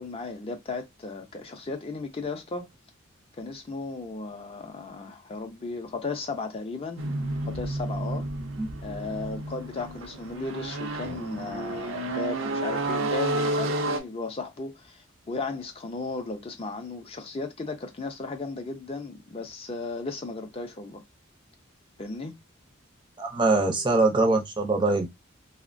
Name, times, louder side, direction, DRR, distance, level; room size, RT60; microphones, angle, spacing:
voice 1, 0.0-2.7 3.4-7.0 7.5-8.3 8.8-21.0 22.0-22.3, left 3 dB, 30° left, 0.4 m, -35 dB
sound 1, 7.0-14.0, right 2 dB, 70° right, 0.5 m, -31 dB
voice 2, 23.2-25.1, right 2 dB, 25° right, 0.5 m, -23 dB
2.8 x 2.1 x 2.5 m
head